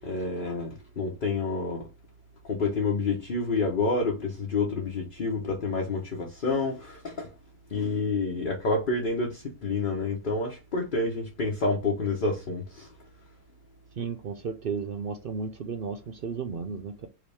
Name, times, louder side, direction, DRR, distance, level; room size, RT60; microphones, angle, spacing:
voice 1, 0.0-1.8 2.5-7.3 7.7-12.9, left 3 dB, 40° left, 1.0 m, -28 dB
voice 2, 14.0-17.1, right 5 dB, 70° right, 0.5 m, -34 dB
4.8 x 3.0 x 3.4 m
omnidirectional pair, 1.6 m